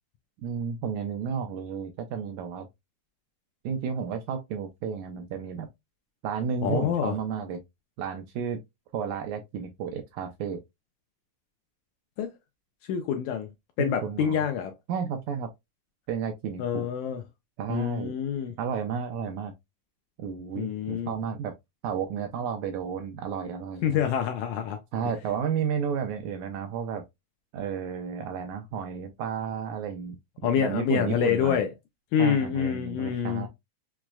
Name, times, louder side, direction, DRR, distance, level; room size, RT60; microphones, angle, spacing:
voice 1, 0.4-2.7 3.6-5.7 6.2-7.6 8.0-8.6 8.9-10.6 13.8-14.4 14.9-15.5 16.1-16.9 17.6-18.1 18.6-19.5 20.2-21.5 21.8-24.1 24.9-27.0 27.5-31.6 32.2-33.5, right 7 dB, 80° right, 1.7 m, -32 dB
voice 2, 6.6-7.2 12.2-12.3 12.9-13.5 13.8-14.7 16.6-17.2 17.7-18.5 20.6-21.1 23.8-24.8 30.4-31.7 32.1-33.5, left 8 dB, 80° left, 1.7 m, -26 dB
5.9 x 2.1 x 2.2 m
omnidirectional pair, 3.8 m